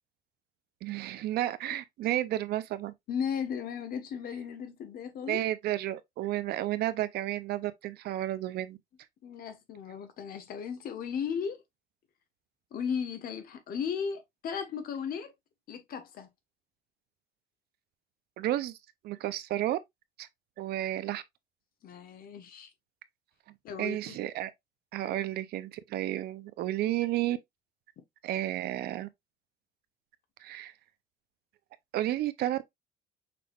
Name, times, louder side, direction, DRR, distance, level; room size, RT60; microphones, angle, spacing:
voice 1, 0.8-2.9 5.3-8.8 18.4-18.8 19.0-19.8 20.2-20.3 20.6-21.2 23.8-24.5 24.9-27.4 28.2-29.1 30.4-30.7 31.9-32.7, right 14 dB, 70° right, 0.6 m, -32 dB
voice 2, 3.1-5.4 9.2-11.6 12.7-15.3 15.7-16.3 21.8-22.7 23.6-24.2, left 7 dB, 60° left, 1.2 m, -36 dB
5.9 x 3.4 x 2.4 m
cardioid pair, 110°, 17 cm